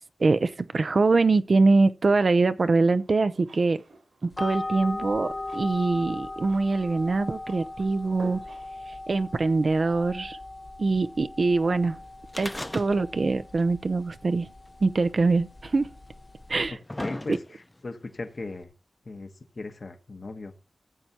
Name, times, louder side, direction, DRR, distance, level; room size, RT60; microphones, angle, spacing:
voice 1, 0.2-3.8 4.2-8.4 8.9-10.4 10.8-12.0 12.4-14.5 14.8-15.9 16.5-16.8, right 3 dB, 60° right, 0.6 m, -23 dB
sound 1, 2.6-8.8, right 2 dB, 90° right, 4.4 m, -50 dB
sound 2, 4.3-16.7, left 2 dB, 35° left, 1.3 m, -39 dB
sound 3, 12.3-13.3 13.6-13.7 14.7-14.8 15.7-15.8 16.4-17.8 18.6-18.7, left 1 dB, 20° left, 0.7 m, -36 dB
voice 2, 17.0-18.7 19.1-20.6, left 3 dB, 60° left, 1.2 m, -38 dB
14.5 x 7.9 x 2.9 m
cardioid pair, 55°, 0 cm